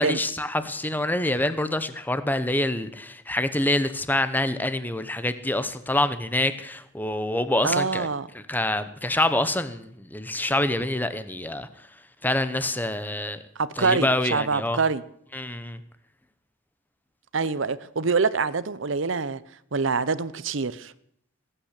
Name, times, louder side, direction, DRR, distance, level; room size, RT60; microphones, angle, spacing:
voice 1, 0.0-8.1 8.3-11.7 12.2-13.4 13.8-14.8 15.3-15.8, left 1 dB, 10° left, 0.9 m, -26 dB
voice 2, 7.6-8.3 13.6-15.0 17.3-19.4 19.7-20.9, right 4 dB, 70° right, 0.8 m, -25 dB
19.0 x 9.0 x 8.2 m
head